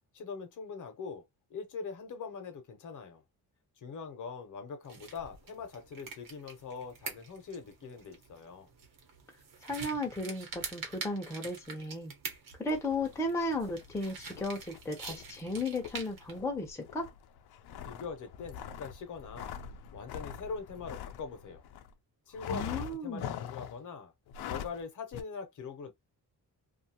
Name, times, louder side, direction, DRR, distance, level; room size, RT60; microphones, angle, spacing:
voice 1, 0.1-1.2 1.5-3.2 3.8-8.7 17.8-19.6 19.9-21.7 22.3-24.1 24.4-25.9, left 5 dB, 55° left, 0.8 m, -42 dB
sound 1, 4.8-16.4, right 5 dB, 60° right, 1.0 m, -46 dB
voice 2, 9.6-12.1 12.6-17.1 22.5-23.3, left 2 dB, 10° left, 0.6 m, -35 dB
sound 2, 12.7-21.9 22.4-23.8 24.3-24.8 25.1-25.2, left 9 dB, 85° left, 0.5 m, -44 dB
2.6 x 2.4 x 2.8 m
wide cardioid pair, 165°, 37 cm